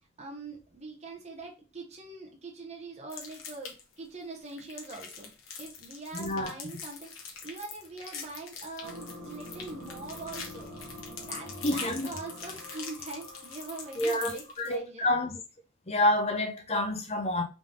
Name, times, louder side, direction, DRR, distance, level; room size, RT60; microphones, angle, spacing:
voice 1, 0.2-10.7 11.2-15.2, right 3 dB, 35° right, 0.9 m, -43 dB
sound 1, 3.1-3.9 4.4-14.7, left 5 dB, 70° left, 1.3 m, -43 dB
voice 2, 6.1-6.5 11.6-12.1 14.0-15.4 15.9-17.4, left 1 dB, 30° left, 1.0 m, -28 dB
sound 2, 8.8-14.4, left 1 dB, 75° right, 1.5 m, -46 dB
3.8 x 3.5 x 3.7 m
head